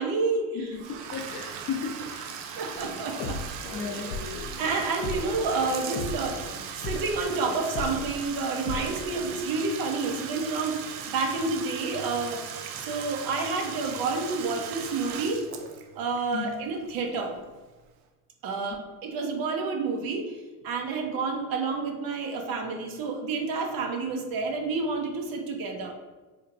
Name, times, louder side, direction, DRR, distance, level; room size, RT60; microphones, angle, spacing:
voice 1, 0.0-0.7 2.6-3.4 3.9-4.0 4.6-6.4 6.8-12.4 12.8-15.5 15.9-17.3 18.4-20.3 20.6-26.0, right 4 dB, 50° right, 3 dB, 0.7 m, -29 dB
voice 2, 0.5-2.6 3.7-4.1 16.3-16.5, left 5 dB, 35° left, 1 dB, 0.6 m, -35 dB
Bathtub (filling or washing), 0.7-17.5, right 7 dB, 85° right, 0.6 m, -39 dB
sound 1, 2.7-9.4, left 3 dB, 85° left, 0.8 m, -37 dB
4.3 x 2.9 x 2.5 m, 1.2 s
cardioid pair, 125°, 46 cm